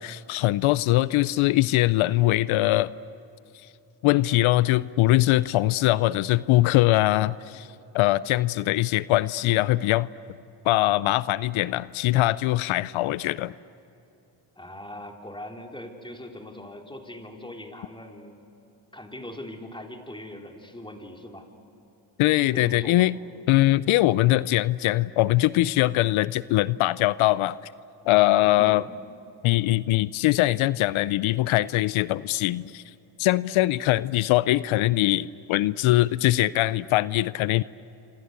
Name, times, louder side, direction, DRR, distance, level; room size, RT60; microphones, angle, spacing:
voice 1, 0.0-2.9 4.0-7.7 7.9-10.1 10.6-13.5 22.2-23.2 23.5-27.6 28.1-28.8 29.4-32.8 33.2-37.6, left 17 dB, 90° left, 18 dB, 0.6 m, -22 dB
voice 2, 14.6-18.4 18.9-21.5 22.5-23.1 28.6-28.9, left 1 dB, 10° left, 2 dB, 4.1 m, -40 dB
27.5 x 26.0 x 8.3 m, 2.8 s
cardioid pair, 65°, 47 cm